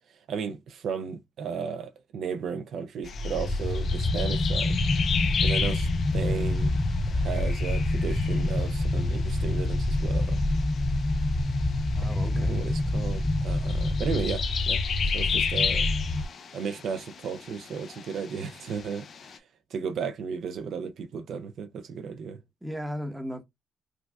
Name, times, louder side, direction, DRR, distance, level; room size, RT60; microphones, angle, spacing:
voice 1, 0.3-4.8 5.4-6.7 7.1-10.4 12.3-14.8 15.1-15.9 16.5-19.4 19.7-22.4, right 6 dB, 70° right, 0.5 m, -34 dB
sound 1, 3.0-19.4, left 6 dB, 55° left, 0.7 m, -35 dB
sound 2, 3.0-16.3, left 2 dB, 15° left, 0.5 m, -27 dB
voice 2, 11.9-12.7 22.6-23.4, equal, 10° right, 0.9 m, -36 dB
4.8 x 2.3 x 2.2 m
cardioid pair, 90°, 0 cm